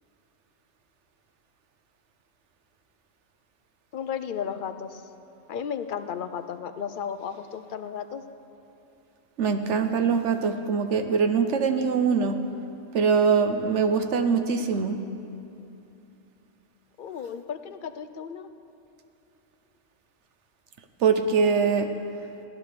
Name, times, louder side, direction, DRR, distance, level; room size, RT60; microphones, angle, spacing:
voice 1, 3.9-5.0 5.5-8.2 13.7-14.0 17.0-18.5, left 7 dB, 55° left, 10 dB, 0.7 m, -34 dB
voice 2, 9.4-12.4 12.9-15.0 21.0-21.9, right 5 dB, 70° right, 7 dB, 1.2 m, -23 dB
15.5 x 10.5 x 6.8 m, 2.8 s
omnidirectional pair, 1.3 m